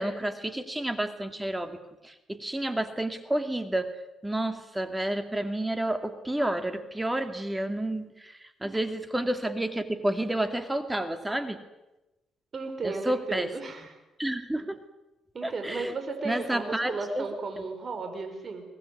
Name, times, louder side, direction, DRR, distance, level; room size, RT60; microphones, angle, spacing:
voice 1, 0.0-3.9 4.2-11.6 12.8-13.5 14.2-14.8 15.4-15.9 16.2-17.3, right 1 dB, 10° right, 8 dB, 2.3 m, -30 dB
voice 2, 12.5-13.9 15.3-18.6, right 3 dB, 40° right, 6 dB, 5.4 m, -34 dB
23.5 x 19.5 x 9.7 m, 0.99 s
cardioid pair, 90°, 0 cm